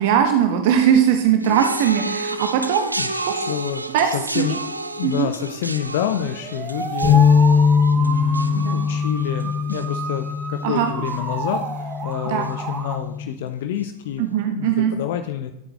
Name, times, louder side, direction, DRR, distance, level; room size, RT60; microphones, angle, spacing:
voice 1, 0.0-2.9 3.2-3.3 3.9-4.1 4.3-4.6 5.0-5.3 8.5-8.9 10.6-10.9 12.3-12.4 14.2-14.9, right 9 dB, 50° right, 6 dB, 0.7 m, -20 dB
sound 1, 1.4-10.8 11.0-11.6 12.4-12.5, right 2 dB, 85° right, 0.4 m, -32 dB
voice 2, 3.0-3.8 4.1-4.6 5.0-7.2 7.9-14.2 14.5-15.5, left 10 dB, 55° left, 8 dB, 0.5 m, -28 dB
sound 2, 6.1-13.0, right 4 dB, 25° right, 1.0 m, -31 dB
sound 3, 7.0-13.3, left 6 dB, 10° left, 1.6 m, -21 dB
12.0 x 7.8 x 2.4 m, 0.85 s
figure-of-eight pair, 90°, 0 cm